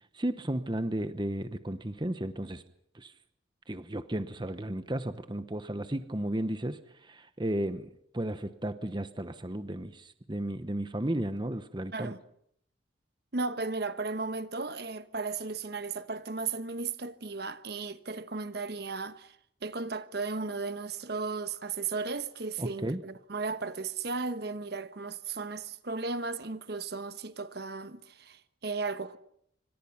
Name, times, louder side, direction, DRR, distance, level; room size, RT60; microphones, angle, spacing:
voice 1, 0.1-2.6 2.9-3.1 3.7-12.1 22.6-23.0, right 1 dB, 25° right, 1.0 m, -34 dB
voice 2, 13.3-19.4 19.6-29.2, right 4 dB, 55° right, 1.1 m, -35 dB
27.0 x 25.5 x 5.8 m
head